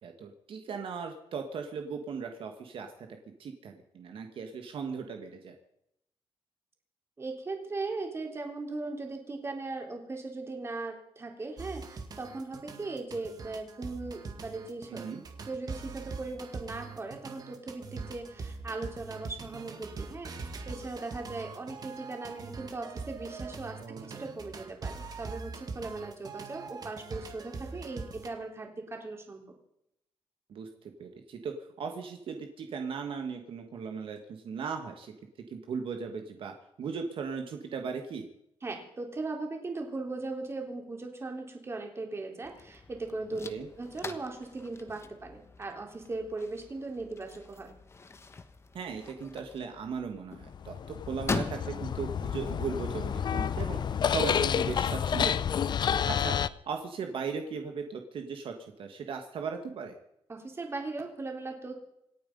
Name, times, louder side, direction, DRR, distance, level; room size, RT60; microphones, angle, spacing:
voice 1, 0.0-3.1 3.4-5.5 14.9-15.2 23.8-24.3 30.5-35.1 35.5-38.3 43.5-43.7 48.7-55.7 56.1-56.4 56.7-60.0, right 5 dB, 65° right, 4 dB, 1.8 m, -38 dB
voice 2, 7.2-15.1 15.5-29.4 38.6-43.5 43.8-47.8 60.3-61.7, right 3 dB, 25° right, 2 dB, 3.6 m, -38 dB
sound 1, 11.6-28.3, right 4 dB, 40° right, 2.1 m, -42 dB
sound 2, 42.4-54.8, left 3 dB, 25° left, 1.3 m, -43 dB
sound 3, 50.5-56.5, left 8 dB, 50° left, 0.6 m, -29 dB
27.0 x 9.4 x 5.4 m, 0.80 s
cardioid pair, 135°, 10 cm